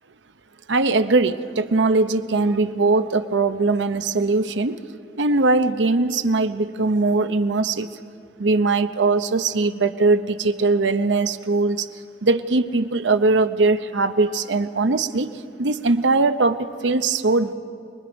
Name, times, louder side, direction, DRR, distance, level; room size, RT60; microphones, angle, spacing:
voice 1, 0.7-4.8 5.2-7.9 8.4-11.9 12.2-15.3 15.6-17.5, right 3 dB, 90° right, 10 dB, 0.8 m, -20 dB
24.5 x 21.0 x 5.2 m, 2.4 s
head